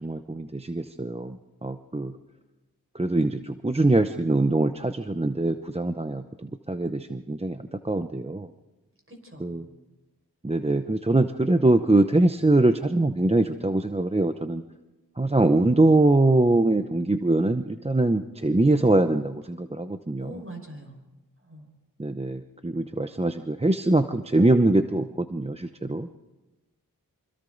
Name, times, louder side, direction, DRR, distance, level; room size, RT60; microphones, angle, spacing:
voice 1, 0.0-1.4 1.6-2.1 2.9-6.2 6.7-7.6 7.8-8.5 9.4-9.6 10.4-14.6 15.2-20.3 22.0-26.1, right 2 dB, 15° right, 8 dB, 0.8 m, -23 dB
voice 2, 9.1-9.6 20.2-21.0 21.4-21.7, right 1 dB, 35° right, 2 dB, 5.4 m, -43 dB
26.0 x 25.5 x 4.0 m, 1.1 s
wide cardioid pair, 60°, 36 cm